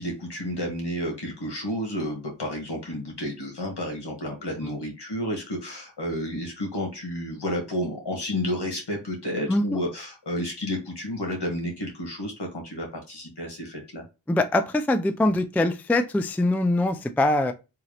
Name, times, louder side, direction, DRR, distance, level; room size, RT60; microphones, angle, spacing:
voice 1, 0.0-14.0, equal, 60° left, 2 dB, 1.9 m, -31 dB
voice 2, 9.5-9.8 14.3-17.5, left 2 dB, 5° left, 9 dB, 0.4 m, -23 dB
3.6 x 2.9 x 3.3 m, 0.28 s
cardioid pair, 45°, 45 cm